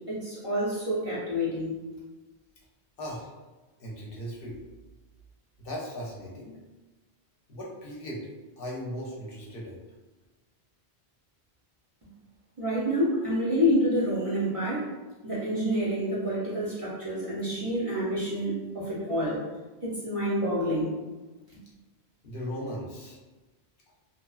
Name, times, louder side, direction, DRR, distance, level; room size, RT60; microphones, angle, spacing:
voice 1, 0.1-1.8 12.6-14.9 15.2-19.4 19.8-21.0, equal, 40° right, -9 dB, 0.6 m, -28 dB
voice 2, 3.0-3.3 3.8-4.6 5.6-6.6 7.5-8.3 8.6-9.8 22.2-23.2, equal, 65° left, -4 dB, 0.7 m, -37 dB
2.8 x 2.1 x 2.3 m, 1.2 s
omnidirectional pair, 1.1 m